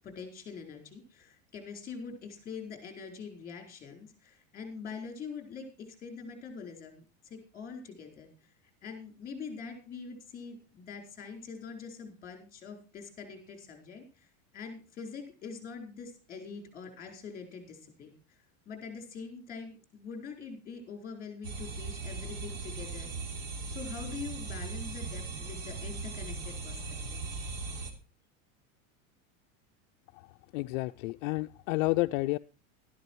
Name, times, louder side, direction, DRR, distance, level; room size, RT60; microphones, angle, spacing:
voice 1, 0.0-8.3 8.8-14.3 14.5-18.1 18.7-23.1 23.7-26.8 27.1-27.2, left 5 dB, 20° left, 4 dB, 4.4 m, -44 dB
sound 1, 21.4-27.9, right 3 dB, 55° right, 3.2 m, -38 dB
voice 2, 30.5-32.4, left 21 dB, 65° left, 9 dB, 0.5 m, -30 dB
12.5 x 11.0 x 4.6 m, 0.35 s
supercardioid pair, 150°, 41 cm